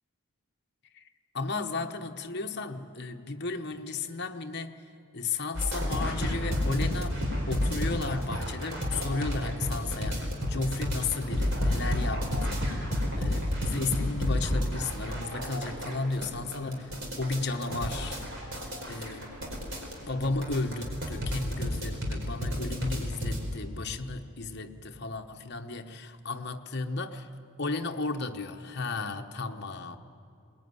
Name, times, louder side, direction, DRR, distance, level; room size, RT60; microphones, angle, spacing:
voice 1, 1.3-4.9 5.1-7.2 7.5-18.3 18.9-19.3 20.1-27.3 27.6-30.0, left 3 dB, 50° left, 5 dB, 1.1 m, -34 dB
sound 1, 5.5-23.4, left 1 dB, 55° right, 4.8 m, -31 dB
22.5 x 20.5 x 9.7 m, 2.5 s
head